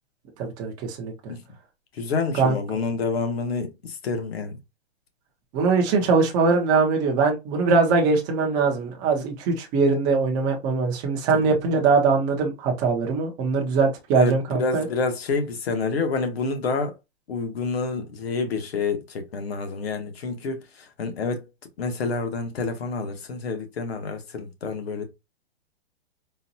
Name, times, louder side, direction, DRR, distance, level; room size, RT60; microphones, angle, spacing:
voice 1, 0.4-1.1 2.4-2.6 5.5-14.9, right 4 dB, 15° right, 0.4 m, -22 dB
voice 2, 1.9-4.6 11.3-11.5 14.1-16.9 17.3-21.5 21.8-25.0, left 4 dB, 70° left, 1.1 m, -28 dB
3.9 x 2.2 x 2.7 m
hypercardioid pair, 150°, 32 cm